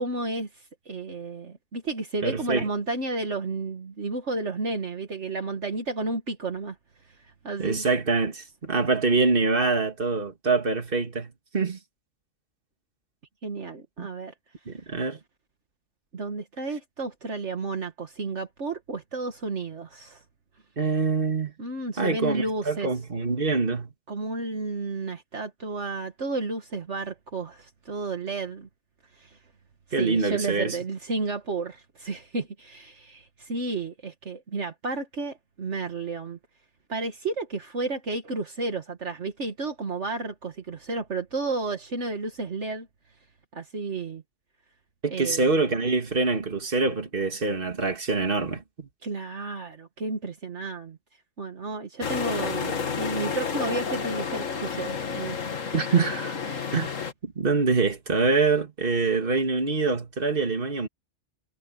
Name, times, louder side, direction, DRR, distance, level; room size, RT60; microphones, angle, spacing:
voice 1, 0.0-6.8 7.4-7.8 13.4-14.3 16.1-20.2 21.6-22.9 24.1-28.7 29.2-29.4 30.0-36.4 36.9-42.9 43.5-44.2 45.1-45.5 49.0-51.0 51.4-55.4 56.5-56.7, right 3 dB, 65° right, 2.0 m, -32 dB
voice 2, 2.2-2.7 7.6-11.8 14.0-14.1 14.7-15.2 20.8-21.5 22.0-23.9 29.9-30.8 45.0-48.9 55.7-56.4 56.7-56.9 57.2-60.9, right 4 dB, 45° right, 2.4 m, -25 dB
sound 1, 52.0-57.1, left 6 dB, 90° left, 2.0 m, -30 dB
omnidirectional pair, 1.3 m